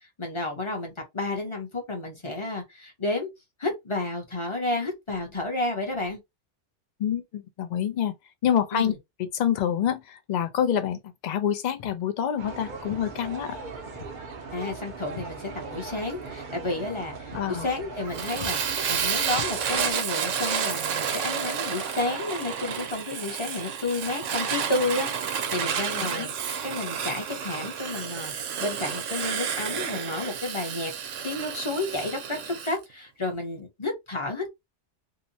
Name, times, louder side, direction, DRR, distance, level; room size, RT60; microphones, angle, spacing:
voice 1, 0.2-3.3 3.6-6.2 8.7-8.9 14.5-26.3 26.6-30.9 31.2-34.5, left 2 dB, 30° left, 0.8 m, -31 dB
voice 2, 7.0-8.1 8.4-8.9 9.2-13.6 17.3-17.7 26.0-26.3, left 9 dB, 60° left, 0.5 m, -27 dB
Walk footsteps, 11.8-12.1 12.9-13.1 13.9-14.2 14.5-15.9 16.2-16.4 16.8-17.0 17.3-17.5 17.8-18.1 18.4-18.6 19.3-20.0, left 6 dB, 75° left, 0.9 m, -43 dB
sound 1, 12.4-19.9, right 4 dB, 55° right, 0.6 m, -39 dB
Fire, 18.1-32.8, right 7 dB, 80° right, 0.9 m, -30 dB
2.8 x 2.1 x 2.6 m
omnidirectional pair, 1.2 m